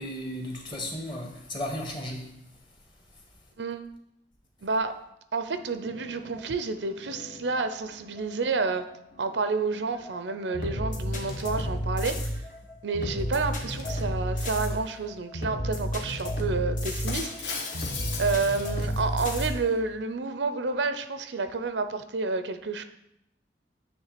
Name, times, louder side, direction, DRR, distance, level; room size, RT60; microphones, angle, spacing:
voice 1, 0.0-2.2, left 1 dB, 25° left, 1.5 m, -34 dB
voice 2, 4.6-5.0 5.3-8.8 9.2-12.3 12.8-17.9 18.2-22.8, right 4 dB, 85° right, 0.6 m, -30 dB
sound 1, 5.5-19.8, equal, 45° left, 1.2 m, -33 dB
Shatter, 17.1-19.5, left 4 dB, 80° left, 1.2 m, -36 dB
9.4 x 3.3 x 6.7 m
head